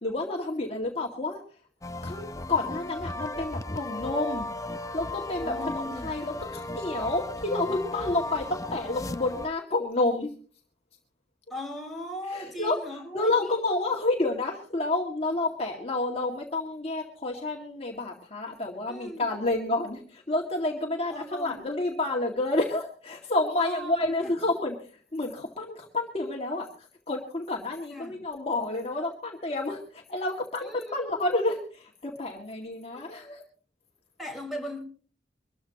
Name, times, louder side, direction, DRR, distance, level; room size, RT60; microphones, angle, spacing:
voice 1, 0.0-1.4 2.0-4.5 4.9-10.3 12.3-33.4, left 2 dB, 35° left, 0 dB, 2.1 m, -29 dB
sound 1, 1.8-9.5, left 2 dB, 20° left, 0.7 m, -36 dB
voice 2, 5.4-6.1 11.5-13.6 18.9-19.3 21.1-21.6 23.6-24.3 27.9-28.1 30.6-31.0 32.9-33.1 34.2-34.8, left 1 dB, ahead, 1 dB, 4.7 m, -38 dB
24.0 x 14.0 x 3.0 m, 0.40 s
head